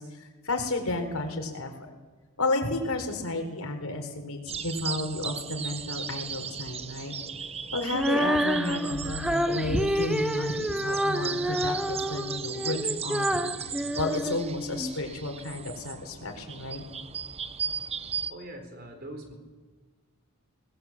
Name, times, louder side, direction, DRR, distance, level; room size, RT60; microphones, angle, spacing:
voice 1, 0.0-1.7 2.4-7.1 7.7-13.6 13.9-16.8, left 2 dB, 75° left, 5 dB, 4.2 m, -32 dB
sound 1, 4.5-18.3, right 7 dB, 30° right, 0.9 m, -37 dB
Female singing, 7.9-15.0, equal, 5° right, 0.7 m, -28 dB
voice 2, 18.3-19.3, right 1 dB, 45° right, 5 dB, 4.4 m, -42 dB
26.5 x 20.5 x 7.5 m, 1.4 s
head